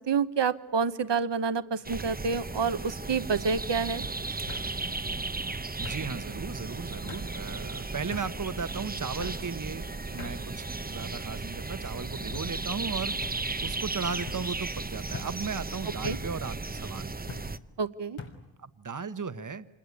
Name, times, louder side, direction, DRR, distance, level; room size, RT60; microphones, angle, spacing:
voice 1, 0.1-4.1 16.0-16.2 17.8-18.2, right 5 dB, 60° right, 13 dB, 1.1 m, -28 dB
sound 1, 1.0-1.4 1.8-2.3 3.4-3.5 4.5-4.7 5.8-6.0 7.1-7.3 8.1-8.3 9.2-9.4 10.2-10.4 11.1-11.5 12.3-12.5 13.2-13.4 14.3-14.4 15.1-15.3 16.0-16.3 17.3-17.5 18.2-18.4, left 4 dB, 80° left, 3.6 m, -42 dB
sound 2, 1.8-17.6, right 3 dB, 20° right, 0.8 m, -35 dB
voice 2, 5.8-13.1 13.6-17.2 18.6-19.7, right 5 dB, 40° right, 12 dB, 1.2 m, -36 dB
27.0 x 21.0 x 9.7 m, 1.0 s
wide cardioid pair, 70°, 49 cm